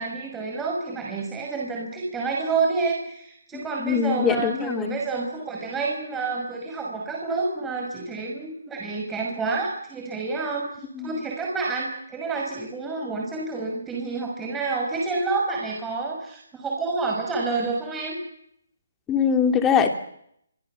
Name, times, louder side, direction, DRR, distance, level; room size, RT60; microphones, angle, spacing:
voice 1, 0.0-10.7 11.0-18.2, right 4 dB, 10° right, -1 dB, 5.8 m, -28 dB
voice 2, 3.5-4.9 10.9-11.1 19.1-19.9, left 7 dB, 15° left, 6 dB, 3.1 m, -22 dB
26.5 x 25.0 x 7.3 m, 0.72 s
hypercardioid pair, 155°, 0 cm